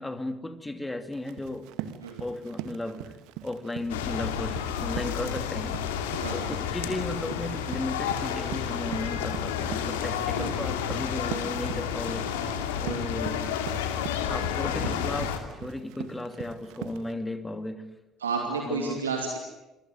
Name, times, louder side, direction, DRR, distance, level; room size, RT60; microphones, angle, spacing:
voice 1, 0.0-1.7 2.2-3.1 3.4-5.8 6.3-12.5 12.8-13.5 14.3-17.9 18.7-19.0, left 1 dB, 15° left, 9 dB, 3.1 m, -35 dB
Run, 1.1-17.1, right 11 dB, 65° right, 1.9 m, -42 dB
sound 1, 3.9-15.4, left 8 dB, 75° left, 2.8 m, -31 dB
voice 2, 6.1-6.5 10.4-10.5 12.8-13.1 18.2-19.4, right 4 dB, 80° right, 3 dB, 2.7 m, -31 dB
28.0 x 22.0 x 9.4 m, 0.98 s
figure-of-eight pair, 50°, 0 cm